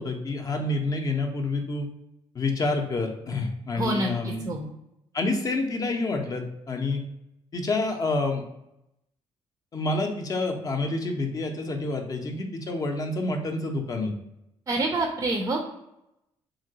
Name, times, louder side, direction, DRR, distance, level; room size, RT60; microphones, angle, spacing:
voice 1, 0.0-1.9 2.3-4.5 5.1-7.0 7.5-8.4 9.7-14.1, left 2 dB, 35° left, 4 dB, 0.5 m, -28 dB
voice 2, 3.7-4.7 14.7-15.6, right 2 dB, 30° right, 2 dB, 0.4 m, -27 dB
2.9 x 2.8 x 2.7 m, 0.85 s
cardioid pair, 95°, 10 cm